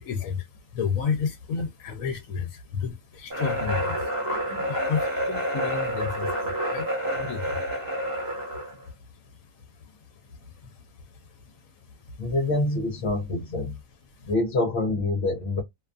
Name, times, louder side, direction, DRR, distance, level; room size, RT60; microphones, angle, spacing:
voice 1, 0.0-7.7 8.0-12.3 14.1-14.3, left 6 dB, 80° left, 1.0 m, -33 dB
sound 1, 3.3-8.7, equal, 20° right, 0.8 m, -29 dB
voice 2, 12.2-13.8 14.3-15.6, left 2 dB, 55° left, 0.9 m, -26 dB
2.5 x 2.3 x 2.4 m
omnidirectional pair, 1.4 m